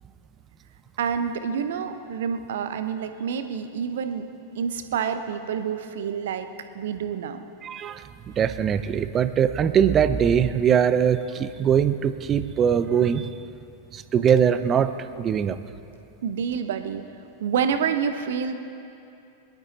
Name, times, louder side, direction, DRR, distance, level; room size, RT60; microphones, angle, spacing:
voice 1, 1.0-4.3 4.5-6.5 6.7-7.4 16.2-17.0 17.4-18.5, right 7 dB, 60° right, 9 dB, 0.9 m, -28 dB
voice 2, 7.6-8.0 8.4-13.3 13.9-15.6, right 8 dB, 25° right, 12 dB, 0.6 m, -21 dB
23.0 x 12.0 x 4.1 m, 2.7 s
figure-of-eight pair, 90°, 0 cm